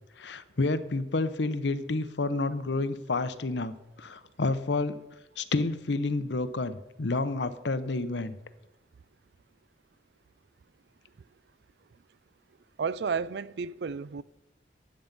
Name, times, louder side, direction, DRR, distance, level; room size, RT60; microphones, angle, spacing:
voice 1, 0.2-5.0 5.4-8.4, left 3 dB, 75° left, 0.8 m, -30 dB
voice 2, 12.8-14.2, right 5 dB, 65° right, 0.4 m, -32 dB
13.0 x 9.4 x 5.3 m
head